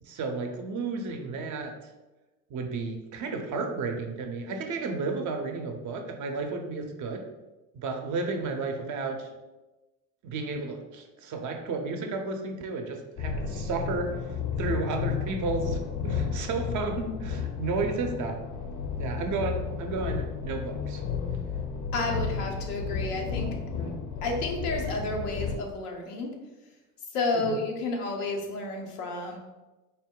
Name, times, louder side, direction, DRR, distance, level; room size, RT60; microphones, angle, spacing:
voice 1, 0.0-1.7 2.5-7.2 7.7-9.3 10.2-14.2 14.6-18.4 19.0-21.0 23.7-24.0 27.3-27.6, right 3 dB, 40° right, 4 dB, 0.6 m, -32 dB
sound 1, 13.2-25.6, left 6 dB, 45° left, 0.7 m, -32 dB
voice 2, 21.9-23.5 24.2-26.3 27.1-29.4, left 2 dB, 85° left, 1 dB, 0.8 m, -31 dB
3.8 x 2.1 x 3.6 m, 1.1 s
hypercardioid pair, 75°, 45 cm